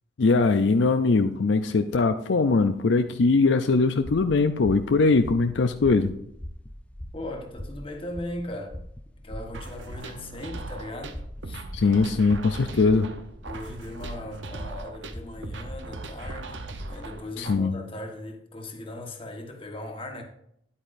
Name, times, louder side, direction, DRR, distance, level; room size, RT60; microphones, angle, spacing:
voice 1, 0.2-6.1 11.7-13.1 17.4-17.7, left 3 dB, 70° left, 0.5 m, -21 dB
sound 1, 4.0-17.2, equal, 5° left, 0.5 m, -42 dB
voice 2, 7.1-8.8 9.2-11.2 11.4-11.6 13.4-20.2, left 1 dB, 30° left, 1.3 m, -38 dB
sound 2, 9.5-17.5, right 2 dB, 80° right, 0.8 m, -39 dB
10.0 x 8.6 x 2.6 m
head